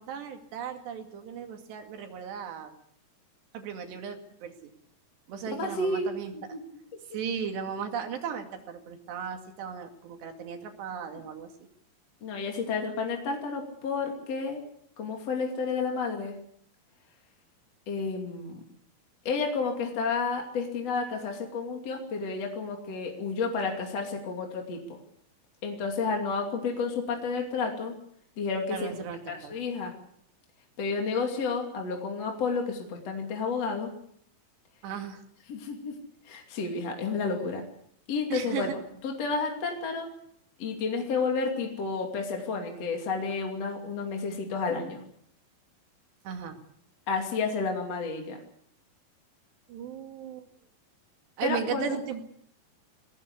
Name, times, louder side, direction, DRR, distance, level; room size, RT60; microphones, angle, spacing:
voice 1, 0.0-2.7 3.5-4.7 5.3-6.3 7.1-11.5 28.7-29.6 34.8-35.2 38.3-38.8 46.2-46.6 49.7-50.5 51.4-52.2, right 7 dB, 75° right, 5 dB, 4.4 m, -36 dB
voice 2, 5.5-6.1 6.3-6.6 12.2-14.6 15.0-16.3 17.9-18.6 19.2-25.0 25.6-27.9 28.4-28.9 29.3-29.9 30.8-33.9 35.5-35.9 36.2-37.6 38.1-38.7 39.0-40.1 40.6-45.0 47.1-48.4 51.4-52.0, left 4 dB, 40° left, 2 dB, 3.4 m, -31 dB
22.0 x 17.5 x 8.3 m, 0.67 s
omnidirectional pair, 4.9 m